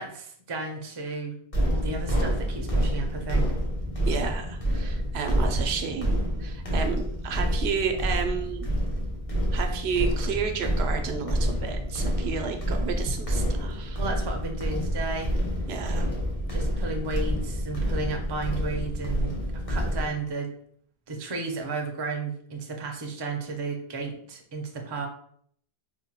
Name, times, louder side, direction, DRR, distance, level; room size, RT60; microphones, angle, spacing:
voice 1, 0.0-1.4 1.7-3.5 14.0-15.3 16.5-20.5 21.1-25.1, right 3 dB, 35° right, 3 dB, 0.4 m, -33 dB
sound 1, 1.5-20.1, equal, 40° left, 0.8 m, -28 dB
voice 2, 4.1-8.7 9.5-14.0 15.7-16.1, right 6 dB, 85° right, 5 dB, 0.8 m, -31 dB
4.4 x 2.1 x 2.9 m, 0.62 s
omnidirectional pair, 1.0 m